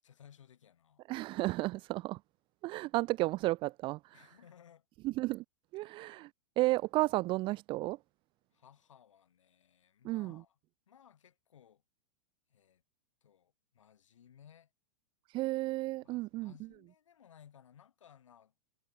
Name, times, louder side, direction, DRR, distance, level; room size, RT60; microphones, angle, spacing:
voice 1, 0.0-1.0 4.1-4.9 5.8-6.0 8.5-10.6 10.9-11.8 12.5-12.8 13.2-14.7 16.0-18.5, left 9 dB, 85° left, 6.2 m, -60 dB
voice 2, 1.1-2.2 2.6-4.1 5.0-5.4 5.7-6.3 6.6-8.0 10.1-10.4 15.3-16.5, right 19 dB, 35° right, 0.4 m, -33 dB
hypercardioid pair, 115°, 16 cm